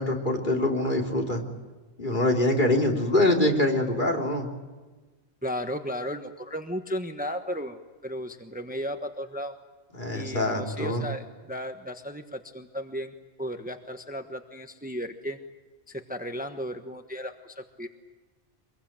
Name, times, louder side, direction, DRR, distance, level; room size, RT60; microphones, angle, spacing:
voice 1, 0.0-1.4 2.0-4.5 9.9-11.1, left 1 dB, 45° left, 1 dB, 3.7 m, -24 dB
voice 2, 5.4-9.5 10.1-13.1 13.4-15.4 15.9-17.9, equal, 10° right, 6 dB, 1.2 m, -35 dB
25.0 x 22.0 x 9.0 m, 1.2 s
omnidirectional pair, 1.1 m